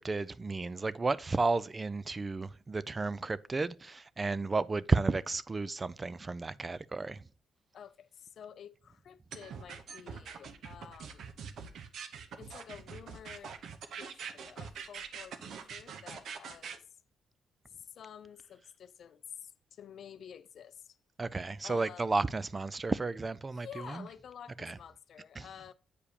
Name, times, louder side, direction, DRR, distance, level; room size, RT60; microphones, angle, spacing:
voice 1, 0.0-7.2 21.2-24.1 24.6-24.8 25.4-25.5, right 3 dB, 25° right, 0.4 m, -32 dB
voice 2, 7.7-11.3 12.4-16.8 17.8-21.0 21.6-22.1 23.6-25.7, left 8 dB, 65° left, 0.4 m, -50 dB
sound 1, 9.3-16.8, right 6 dB, 70° right, 0.8 m, -44 dB
8.3 x 4.9 x 2.8 m
cardioid pair, 95°, 0 cm